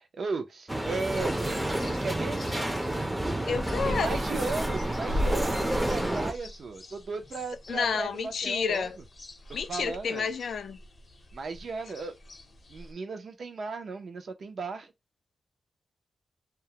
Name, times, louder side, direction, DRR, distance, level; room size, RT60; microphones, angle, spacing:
voice 1, 0.0-2.4 3.8-9.0 9.7-10.3 11.3-12.2 12.7-14.9, right 4 dB, 65° right, 0.5 m, -36 dB
sound 1, 0.7-6.3, right 1 dB, 10° right, 0.4 m, -30 dB
sound 2, 1.1-12.9, equal, 40° left, 0.5 m, -39 dB
voice 2, 3.5-4.2 7.7-9.0 9.5-10.8, left 6 dB, 90° left, 0.4 m, -30 dB
2.3 x 2.0 x 2.8 m
wide cardioid pair, 115°, 0 cm